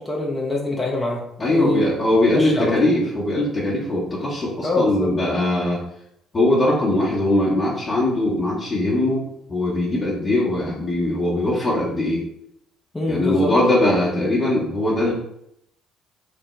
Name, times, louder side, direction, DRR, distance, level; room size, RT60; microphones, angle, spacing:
voice 1, 0.0-1.2 1.5-2.0 2.3-2.9 4.6-5.1 12.9-13.5, left 2 dB, 15° left, -2 dB, 0.6 m, -24 dB
voice 2, 1.4-5.8 6.3-12.2 13.1-15.1, left 1 dB, 35° left, -7 dB, 0.9 m, -21 dB
3.4 x 2.1 x 3.1 m, 0.76 s
figure-of-eight pair, 50°, 0 cm